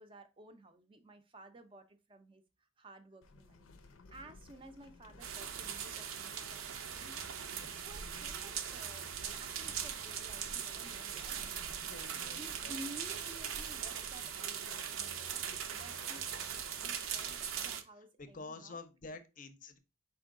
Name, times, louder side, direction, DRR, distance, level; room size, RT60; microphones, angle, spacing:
voice 1, 0.0-11.4 12.2-19.2, right 1 dB, 25° right, 0.4 m, -54 dB
sound 1, 3.2-16.5, left 3 dB, 85° left, 0.5 m, -60 dB
sound 2, 5.2-17.8, right 8 dB, 80° right, 0.5 m, -40 dB
sound 3, 6.9-7.5 8.5-8.6 8.8-10.5 12.7-12.8 13.0-14.2 15.0-16.7, equal, 5° left, 0.7 m, -61 dB
voice 2, 11.9-12.8 18.2-19.8, left 3 dB, 40° left, 0.5 m, -49 dB
4.5 x 3.0 x 3.6 m
head